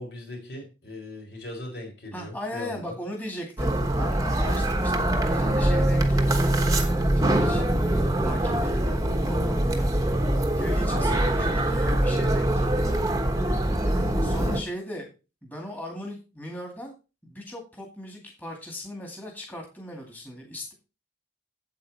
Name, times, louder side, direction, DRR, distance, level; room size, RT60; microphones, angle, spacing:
voice 1, 0.0-2.9 7.6-7.9 11.0-11.2 14.1-14.3, left 1 dB, 65° left, 4.4 m, -39 dB
voice 2, 2.1-6.6 7.1-9.9 10.5-13.0 13.8-15.1 15.4-16.9 17.2-20.7, left 1 dB, 10° left, 2.2 m, -38 dB
sound 1, 3.6-14.6, right 1 dB, 20° right, 1.2 m, -23 dB
8.6 x 8.3 x 4.1 m
head